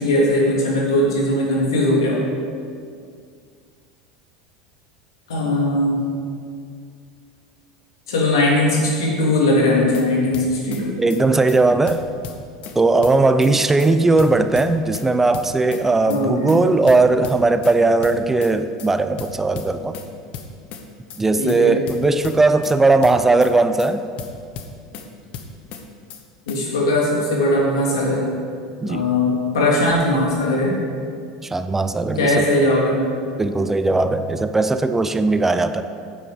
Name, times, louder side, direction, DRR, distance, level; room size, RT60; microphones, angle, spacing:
voice 1, 0.0-2.2 5.3-6.0 8.1-10.9 16.1-16.5 21.4-21.7 26.5-28.2 28.8-30.7 32.2-33.0, left 1 dB, 90° left, -4 dB, 3.0 m, -19 dB
sound 1, 9.7-10.1 10.3-10.8 11.1-11.2 11.5-11.6 11.9-12.8 13.0-13.5 13.8-13.9 14.2-15.1 15.3-15.8 16.1-16.2 16.5-16.6 16.9-17.7 18.0-18.5 18.8-18.9 19.2-20.1 20.3-20.8 21.1-21.2 21.5-21.6 21.9-22.7 23.0-23.5 23.8-23.9 24.2-25.1 25.3-25.8 26.1-26.2 26.5-26.6, left 7 dB, 55° left, 1.1 m, -35 dB
voice 2, 11.0-12.1 12.8-19.9 21.2-24.0 28.8-29.1 31.4-32.4 33.4-35.8, right 3 dB, 15° right, 10 dB, 0.5 m, -18 dB
9.4 x 8.5 x 5.1 m, 2.3 s
hypercardioid pair, 100°, 2 cm